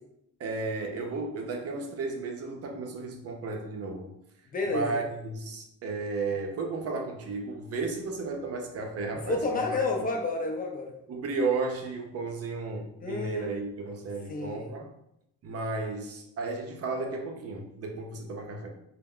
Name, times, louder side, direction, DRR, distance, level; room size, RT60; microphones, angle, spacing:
voice 1, 0.4-4.1 4.7-9.8 11.1-14.9 15.4-18.7, right 3 dB, 55° right, 3 dB, 0.6 m, -33 dB
voice 2, 4.5-5.0 9.3-10.9 13.0-13.5 14.3-14.7, left 3 dB, 30° left, 2 dB, 0.5 m, -30 dB
2.1 x 2.1 x 3.6 m, 0.79 s
cardioid pair, 90°, 30 cm